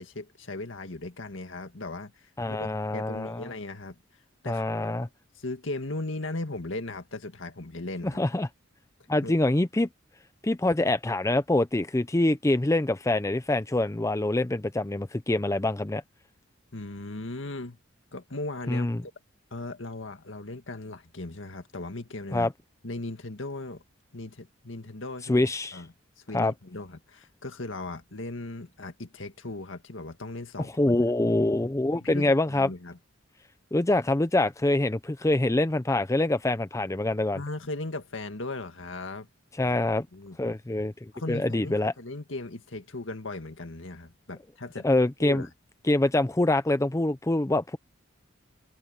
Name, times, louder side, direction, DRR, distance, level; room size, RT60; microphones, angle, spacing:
voice 1, 0.0-4.0 4.4-4.6 5.4-8.2 9.2-9.3 16.7-17.8 18.1-19.1 19.5-22.5 22.8-23.8 24.1-25.9 26.3-31.0 32.0-33.0 37.3-39.3 39.6-39.8 40.1-40.4 41.1-44.9 45.2-45.5, left 2 dB, 70° left, 2.0 m, -37 dB
voice 2, 2.4-3.5 4.5-5.1 8.0-8.5 9.1-9.9 10.4-16.0 18.7-19.0 22.3-22.5 25.3-25.8 26.3-26.5 30.8-32.7 33.7-37.4 39.6-40.1 40.4-41.9 44.8-45.5 45.9-47.8, left 2 dB, 15° left, 0.6 m, -25 dB
head